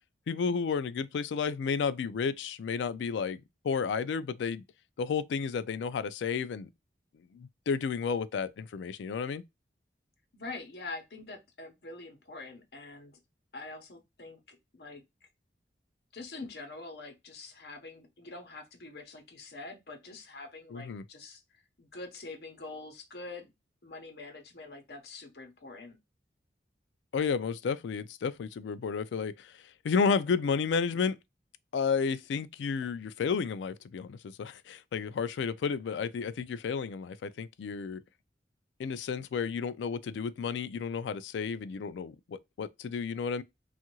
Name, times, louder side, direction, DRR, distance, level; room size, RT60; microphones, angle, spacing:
voice 1, 0.3-4.6 5.0-6.7 7.3-9.4 20.7-21.0 27.1-29.6 29.8-31.2 31.7-38.0 38.8-43.4, left 5 dB, 90° left, 0.3 m, -32 dB
voice 2, 10.3-13.2 13.5-15.3 16.1-23.5 23.8-26.0, left 3 dB, 65° left, 0.9 m, -45 dB
2.7 x 2.4 x 2.8 m
head